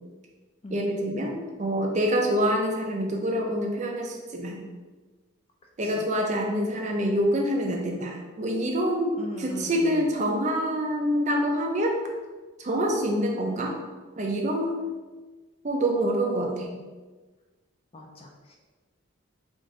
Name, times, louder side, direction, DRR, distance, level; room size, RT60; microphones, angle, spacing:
voice 1, 0.7-4.6 5.8-12.0 12.6-13.8 14.2-14.8 15.6-16.7, equal, 35° right, 1 dB, 0.4 m, -26 dB
voice 2, 9.2-10.1 17.9-18.6, equal, 25° left, 1 dB, 0.4 m, -40 dB
3.7 x 2.5 x 3.7 m, 1.3 s
head